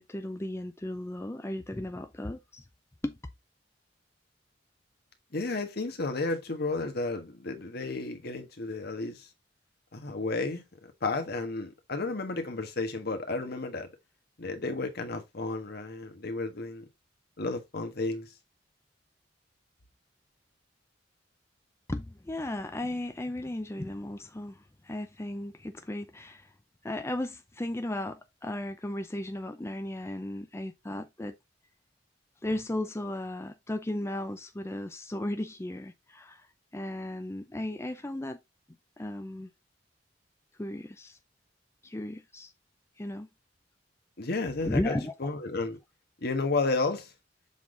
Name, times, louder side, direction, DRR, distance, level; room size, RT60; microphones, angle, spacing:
voice 1, 0.0-2.6 3.0-3.2 21.9-26.5 26.8-31.3 32.4-36.5 36.7-38.4 39.0-39.5 40.6-41.2 41.8-42.5 43.0-43.3 44.6-45.1, left 1 dB, 15° left, 0.5 m, -35 dB
voice 2, 5.3-9.3 9.9-10.6 11.0-13.9 14.4-16.9 17.4-18.3 44.2-45.8 46.2-47.1, left 3 dB, 60° left, 1.4 m, -32 dB
7.1 x 4.0 x 3.9 m
head